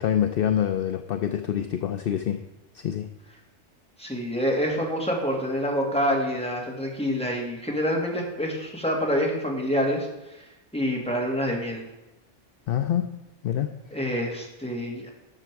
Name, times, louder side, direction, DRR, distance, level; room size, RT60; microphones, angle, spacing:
voice 1, 0.0-2.4 2.7-3.1 12.7-13.1 13.4-13.8, left 10 dB, 60° left, 7 dB, 0.7 m, -26 dB
voice 2, 4.0-10.4 10.7-11.8 13.9-15.1, equal, 5° left, -1 dB, 1.8 m, -27 dB
11.5 x 6.9 x 4.6 m, 0.97 s
omnidirectional pair, 1.2 m